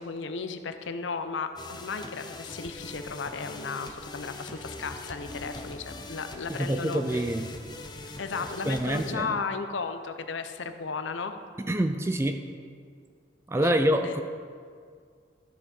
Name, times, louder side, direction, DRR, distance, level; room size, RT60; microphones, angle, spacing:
voice 1, 0.0-7.2 8.2-11.3 13.6-13.7 14.0-14.2, left 4 dB, 80° left, 8 dB, 0.7 m, -35 dB
sound 1, 1.6-9.1, left 2 dB, 25° left, 0.6 m, -42 dB
voice 2, 6.5-7.5 8.6-9.3 11.6-12.4 13.5-14.2, right 1 dB, 15° right, 7 dB, 0.4 m, -26 dB
13.5 x 6.9 x 4.3 m, 2.1 s
head